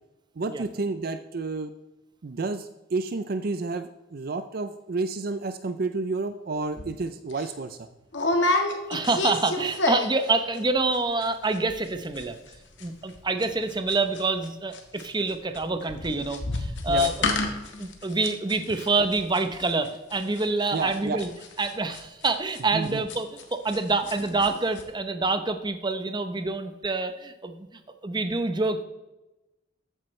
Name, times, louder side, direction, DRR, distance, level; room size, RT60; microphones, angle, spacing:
voice 1, 0.4-1.7 2.2-7.8 16.9-17.1 20.7-21.2 22.7-23.0, right 3 dB, 55° right, 10 dB, 0.5 m, -30 dB
sound 1, 6.8-6.9 7.3-7.5 8.1-10.3 10.5-11.0 11.2-11.3 11.5-11.9 12.2-14.5 14.7-23.8 24.1-24.5 24.8-24.9, left 2 dB, 75° left, 1.5 m, -30 dB
voice 2, 8.9-12.4 12.8-17.1 17.8-21.3 21.6-28.8, right 3 dB, 25° right, 8 dB, 0.8 m, -27 dB
14.0 x 9.1 x 3.2 m, 1.0 s
head